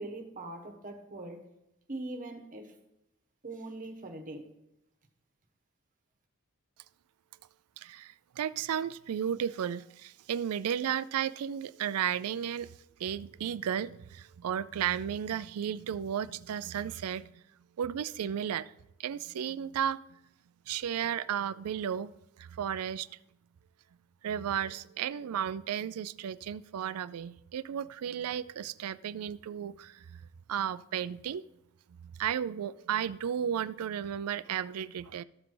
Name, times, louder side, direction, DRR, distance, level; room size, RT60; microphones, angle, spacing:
voice 1, 0.0-1.5 1.9-2.8 3.4-4.5, right 2 dB, 40° right, 4 dB, 1.2 m, -41 dB
voice 2, 7.8-12.7 13.0-17.3 17.8-18.7 19.0-20.0 20.7-22.1 22.4-23.1 24.2-30.2 30.5-31.4 32.0-35.2, right 9 dB, 85° right, 17 dB, 0.4 m, -34 dB
13.5 x 4.7 x 3.8 m, 0.84 s
head